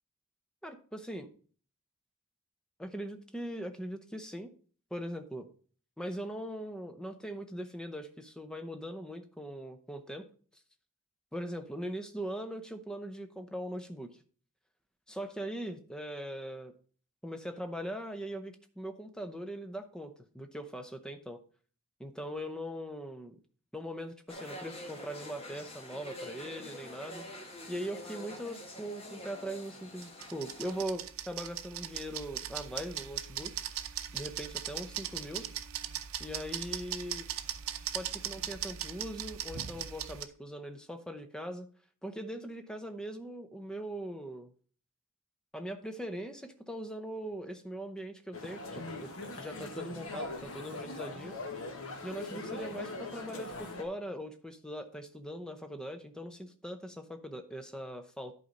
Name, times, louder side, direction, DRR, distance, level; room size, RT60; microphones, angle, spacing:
voice 1, 0.6-1.3 2.8-4.5 4.9-5.5 6.0-10.2 11.3-14.2 15.1-16.7 17.2-21.4 22.0-23.4 23.7-27.3 27.7-33.5 34.1-35.5 36.2-37.3 37.9-41.7 42.0-44.5 45.5-51.3 52.0-58.3, equal, 5° left, 7 dB, 0.7 m, -41 dB
sound 1, 24.3-30.8, left 1 dB, 25° left, 1.2 m, -46 dB
sound 2, 30.0-40.2, right 10 dB, 75° right, 0.6 m, -39 dB
sound 3, 48.3-53.8, left 2 dB, 70° left, 1.4 m, -41 dB
11.0 x 4.2 x 5.2 m, 0.43 s
head